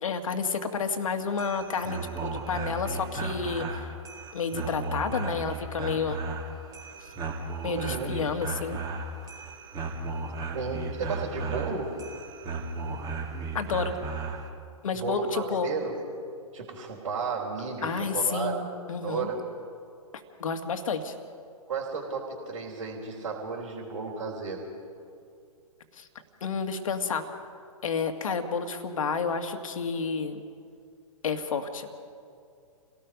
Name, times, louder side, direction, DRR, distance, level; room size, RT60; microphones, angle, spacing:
voice 1, 0.0-3.9 4.3-6.2 7.6-8.8 13.5-13.9 14.8-15.7 17.8-19.3 20.4-21.1 25.9-26.1 26.4-27.3 27.8-30.4 31.2-31.9, left 5 dB, 65° left, 6 dB, 2.0 m, -30 dB
sound 1, 1.2-14.5, right 3 dB, 20° right, 2.2 m, -35 dB
voice 2, 7.7-8.1 10.5-11.9 14.9-15.9 16.5-18.5 19.0-19.4 21.7-24.6, right 5 dB, 65° right, -5 dB, 4.0 m, -33 dB
29.0 x 18.0 x 5.3 m, 2.4 s
figure-of-eight pair, 120°, 19 cm